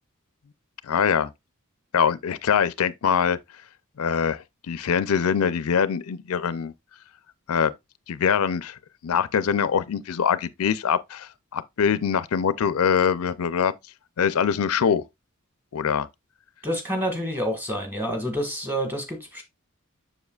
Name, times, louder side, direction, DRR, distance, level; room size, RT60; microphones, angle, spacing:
voice 1, 0.8-1.3 1.9-3.4 4.0-6.7 7.5-7.7 8.1-13.7 14.2-15.0 15.7-16.1, left 7 dB, 80° left, 0.5 m, -23 dB
voice 2, 16.6-19.4, equal, 10° right, 1.7 m, -28 dB
7.2 x 6.7 x 2.3 m
head